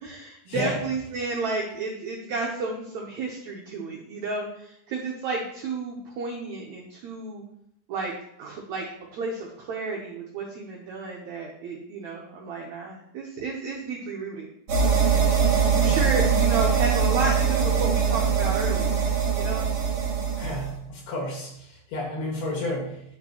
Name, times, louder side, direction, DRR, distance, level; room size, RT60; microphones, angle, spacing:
voice 1, 0.0-7.4 7.9-8.1 8.4-8.9 9.1-14.5 14.8-19.0 19.3-19.7, right 3 dB, 80° right, -1 dB, 1.6 m, -32 dB
sound 1, 14.7-20.7, right 6 dB, 60° right, 1.9 m, -22 dB
voice 2, 20.4-23.0, left 1 dB, 80° left, -1 dB, 3.8 m, -31 dB
11.5 x 4.4 x 2.9 m, 0.75 s
omnidirectional pair, 4.4 m